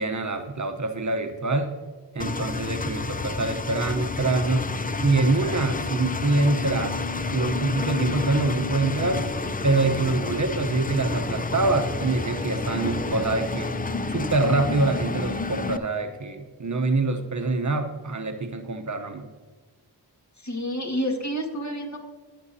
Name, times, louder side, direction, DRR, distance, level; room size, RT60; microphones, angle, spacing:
voice 1, 0.0-1.7 2.1-4.7 5.0-7.0 7.3-9.2 9.6-13.7 14.1-19.3, right 3 dB, 45° right, 7 dB, 0.9 m, -25 dB
Engine, 2.2-15.8, left 3 dB, 20° left, 0.4 m, -29 dB
voice 2, 20.4-22.0, equal, 45° left, 2 dB, 1.8 m, -29 dB
18.0 x 6.3 x 2.7 m, 1.4 s
wide cardioid pair, 70°, 40 cm